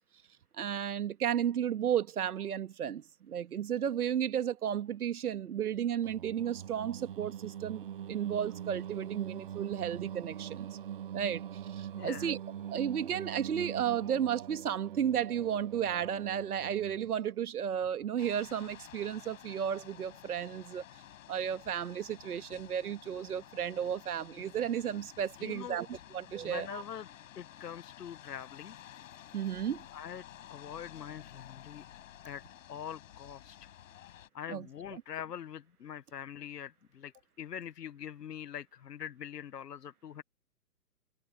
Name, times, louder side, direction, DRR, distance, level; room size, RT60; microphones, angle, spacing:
voice 1, 0.6-10.7 11.1-12.4 12.7-20.8 21.3-26.8 29.3-29.9 34.5-34.7 34.9-35.0, right 9 dB, 65° right, 1.7 m, -33 dB
Singing, 6.0-17.2, right 10 dB, 35° right, 0.5 m, -43 dB
voice 2, 12.0-12.3 25.4-25.8 26.4-27.1 27.4-28.7 29.9-30.2 30.5-31.8 32.2-32.4 32.7-33.7 34.3-40.2, left 9 dB, 75° left, 1.1 m, -43 dB
sound 1, 18.2-34.3, left 11 dB, 50° left, 7.4 m, -53 dB
hypercardioid pair, 135°, 48 cm